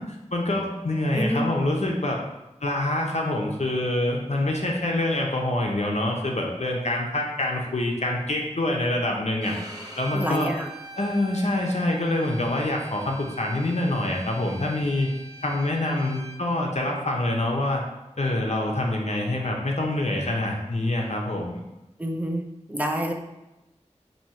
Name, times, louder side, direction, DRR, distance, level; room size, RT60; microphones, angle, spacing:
voice 1, 0.3-2.2 2.6-9.6 10.0-10.5 11.0-15.1 15.4-17.8 18.2-21.6, left 1 dB, 65° left, 0 dB, 0.7 m, -26 dB
Bowed string instrument, 9.4-16.4, right 2 dB, 30° right, 1.0 m, -43 dB
voice 2, 10.1-10.7 22.0-22.4 22.7-23.1, equal, 10° right, 2 dB, 0.6 m, -27 dB
4.4 x 2.7 x 4.3 m, 0.98 s
wide cardioid pair, 45°, 12 cm